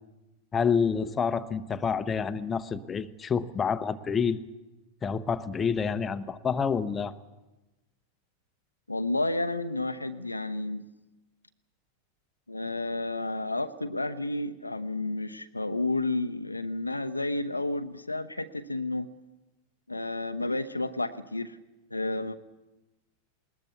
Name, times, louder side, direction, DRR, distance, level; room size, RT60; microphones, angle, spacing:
voice 1, 0.5-4.4 5.0-7.1, left 6 dB, 20° left, 11 dB, 0.9 m, -28 dB
voice 2, 8.9-10.8 12.5-19.1 19.9-21.6 21.9-22.4, left 2 dB, 85° left, 9 dB, 0.9 m, -31 dB
20.5 x 19.5 x 8.4 m, 1.1 s
figure-of-eight pair, 90°, 0 cm